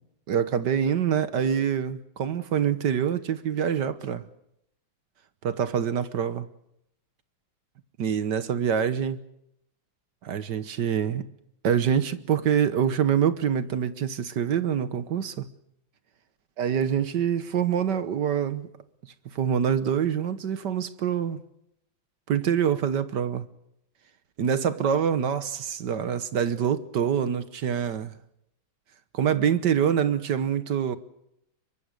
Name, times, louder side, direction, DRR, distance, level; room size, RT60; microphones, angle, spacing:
voice 1, 0.3-4.3 5.4-6.5 8.0-9.2 10.2-11.2 11.6-15.5 16.6-18.7 19.3-21.4 22.3-23.5 24.4-28.1 29.1-31.0, right 8 dB, 60° right, 1.6 m, -25 dB
26.0 x 23.0 x 6.6 m
omnidirectional pair, 2.2 m